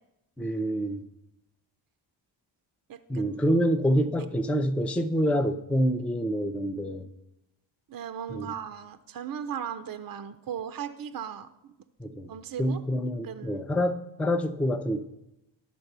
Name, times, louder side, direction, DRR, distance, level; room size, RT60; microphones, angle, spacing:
voice 1, 0.4-1.0 3.1-7.1 8.3-8.5 12.0-12.3 12.6-15.0, equal, 5° left, 6 dB, 0.5 m, -27 dB
voice 2, 2.9-3.4 7.9-11.7 12.3-12.8 13.2-13.7, right 8 dB, 45° right, 9 dB, 0.6 m, -37 dB
11.5 x 4.0 x 6.6 m, 0.89 s
cardioid pair, 90°, 48 cm